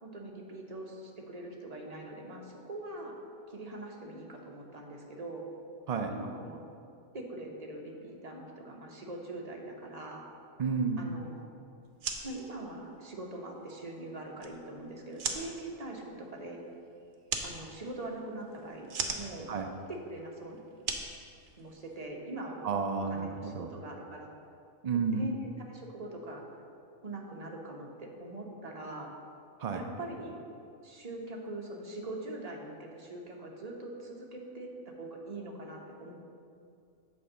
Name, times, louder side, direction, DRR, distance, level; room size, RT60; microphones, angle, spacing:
voice 1, 0.0-3.2 3.5-5.4 6.1-6.6 7.1-10.3 11.0-11.4 12.2-16.6 17.4-19.5 19.9-20.6 20.9-21.0 21.6-22.7 23.1-24.3 24.9-26.4 27.0-29.1 29.7-30.4 30.8-36.1, right 2 dB, 30° right, -1 dB, 1.0 m, -42 dB
voice 2, 10.6-11.0 19.5-19.7 22.6-23.7 24.8-25.2 29.6-29.8, right 5 dB, 80° right, 4 dB, 0.3 m, -31 dB
sound 1, 11.8-22.1, right 5 dB, 65° right, 1.0 m, -41 dB
8.6 x 4.6 x 6.7 m, 2.5 s
omnidirectional pair, 1.4 m